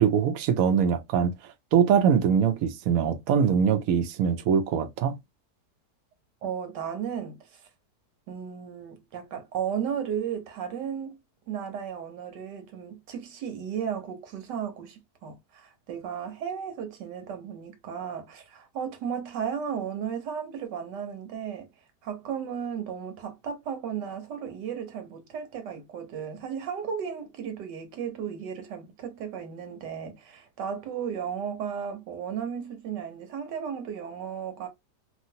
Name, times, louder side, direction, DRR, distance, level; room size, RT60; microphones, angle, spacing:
voice 1, 0.0-1.3 1.7-5.2, right 7 dB, 70° right, 0.9 m, -23 dB
voice 2, 6.4-7.6 8.3-11.2 11.5-21.7 22.0-34.7, right 7 dB, 85° right, 1.5 m, -34 dB
3.0 x 2.5 x 2.7 m
omnidirectional pair, 1.8 m